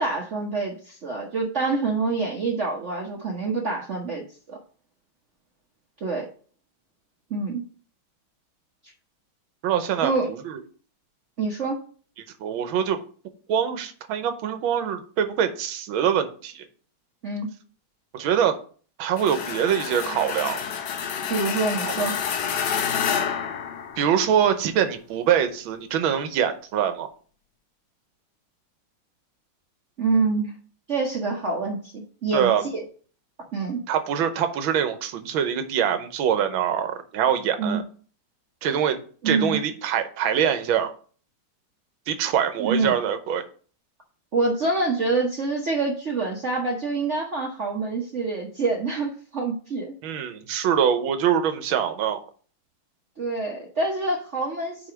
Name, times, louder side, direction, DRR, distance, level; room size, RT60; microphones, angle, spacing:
voice 1, 0.0-4.6 6.0-6.3 7.3-7.6 10.0-10.3 11.4-11.8 17.2-17.5 21.3-22.1 30.0-30.5 30.9-32.5 33.5-33.8 37.6-37.8 39.2-39.6 42.6-43.0 44.3-49.9 53.2-54.9, right 3 dB, 45° right, -1 dB, 1.0 m, -26 dB
voice 2, 9.6-10.6 12.4-13.0 13.5-16.7 18.1-18.6 19.0-20.6 24.0-27.1 32.3-32.7 33.9-37.8 38.6-40.9 42.1-43.4 50.0-52.2, right 8 dB, 75° right, 9 dB, 1.6 m, -24 dB
sound 1, 19.2-24.4, left 7 dB, 65° left, 1.2 m, -28 dB
4.9 x 4.8 x 5.8 m, 0.42 s
omnidirectional pair, 2.3 m